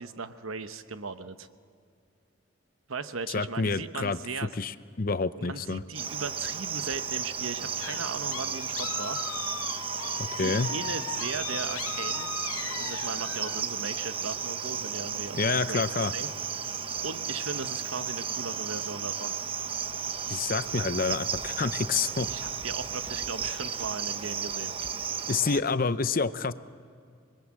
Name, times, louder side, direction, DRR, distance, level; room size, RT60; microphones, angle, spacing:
voice 1, 0.0-1.5 2.9-4.6 5.4-9.2 10.3-12.3 12.6-15.4 15.7-15.8 16.1-16.3 17.0-19.3 22.2-24.7, right 4 dB, 75° right, 10 dB, 1.0 m, -37 dB
voice 2, 3.3-4.2 4.6-5.8 10.2-10.7 15.3-16.1 20.3-22.3 25.3-26.5, left 4 dB, 40° left, 14 dB, 0.6 m, -28 dB
Cricket, 5.9-25.6, right 6 dB, 25° right, 0.7 m, -34 dB
sound 1, 7.8-13.6, left 9 dB, 90° left, 0.6 m, -38 dB
25.5 x 21.5 x 7.6 m, 2.3 s
head